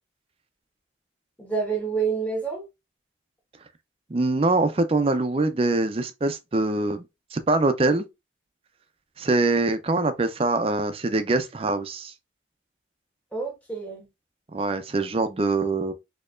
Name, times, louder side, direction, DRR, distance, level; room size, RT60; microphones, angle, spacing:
voice 1, 1.4-2.7 13.3-14.0, right 5 dB, 10° left, 1.2 m, -28 dB
voice 2, 4.1-7.0 7.3-8.1 9.2-12.1 14.5-15.9, right 2 dB, 30° right, 0.4 m, -23 dB
4.3 x 2.9 x 2.4 m
head